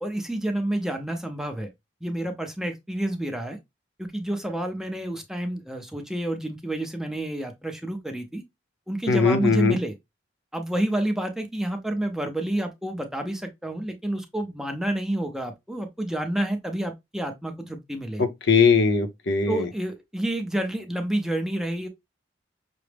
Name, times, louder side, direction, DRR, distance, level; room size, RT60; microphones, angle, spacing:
voice 1, 0.0-1.7 2.0-3.6 4.0-8.4 8.9-9.9 10.5-18.2 19.5-21.9, right 1 dB, 5° right, 0.5 m, -29 dB
voice 2, 9.1-9.8 18.2-19.7, left 5 dB, 60° left, 0.6 m, -20 dB
5.9 x 2.0 x 3.3 m
head